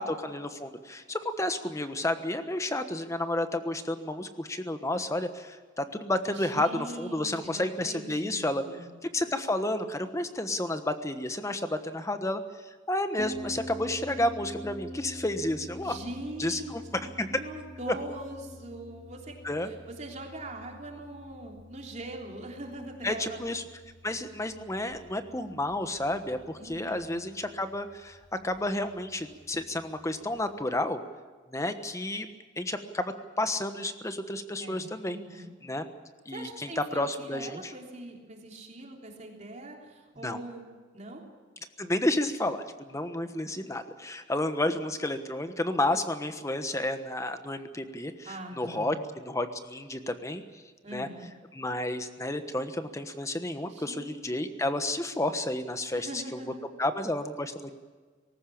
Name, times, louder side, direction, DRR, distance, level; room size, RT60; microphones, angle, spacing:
voice 1, 0.0-8.6 9.1-16.0 16.4-16.8 17.2-17.3 17.9-18.0 19.4-19.7 23.0-23.6 24.0-28.2 28.4-31.0 31.5-32.3 32.6-35.2 35.6-35.9 36.2-37.7 40.2-40.4 41.8-50.6 50.9-51.1 51.5-56.4 56.8-57.7, left 1 dB, 15° left, 9 dB, 1.2 m, -31 dB
voice 2, 6.3-8.9 15.8-16.8 17.3-23.4 26.6-27.2 34.6-35.5 36.3-40.7 40.9-41.2 48.3-49.0 50.8-51.3 53.7-54.4 55.9-56.8, right 1 dB, 35° right, 0 dB, 3.5 m, -42 dB
Harp, 13.2-30.6, equal, 30° left, 3.7 m, -46 dB
20.0 x 18.0 x 8.6 m, 1.4 s
head